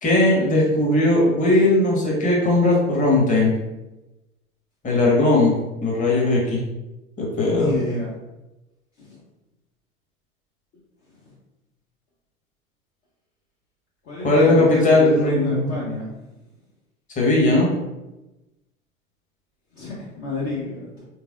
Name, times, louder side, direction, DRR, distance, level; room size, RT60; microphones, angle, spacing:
voice 1, 0.0-3.5 4.8-5.5 5.8-6.6 7.2-7.7 14.2-15.8 17.2-17.7, left 2 dB, 20° left, -3 dB, 1.1 m, -18 dB
voice 2, 7.5-8.1 9.0-9.1 14.0-16.1 19.7-21.0, left 2 dB, 35° left, -5 dB, 0.8 m, -29 dB
3.4 x 3.2 x 2.4 m, 1.0 s
figure-of-eight pair, 90°, 42 cm